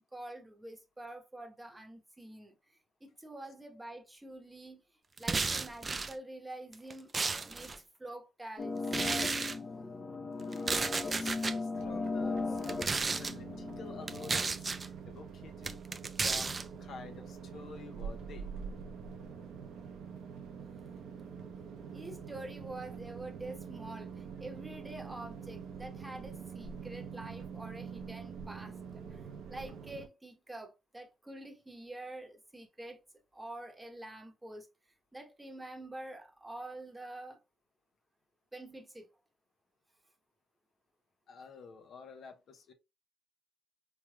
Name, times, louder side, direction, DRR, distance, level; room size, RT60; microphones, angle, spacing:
voice 1, 0.1-2.5 3.0-4.8 5.2-7.1 7.4-8.7 21.9-33.0 33.3-34.7 35.1-37.4 38.5-39.1, right 1 dB, 15° right, 1.0 m, -46 dB
sound 1, 5.2-6.1 6.7-7.8 8.9-9.6 10.5-11.6 12.6-13.3 14.1-14.9 15.6-16.6, right 4 dB, 30° right, 0.4 m, -33 dB
sound 2, 8.6-14.4, left 3 dB, 25° left, 0.6 m, -37 dB
voice 2, 10.4-15.8 16.2-18.5 41.3-42.7, left 5 dB, 65° left, 0.9 m, -50 dB
sound 3, 11.7-30.1, right 6 dB, 80° right, 0.8 m, -45 dB
4.5 x 3.3 x 2.3 m
cardioid pair, 90°, 0 cm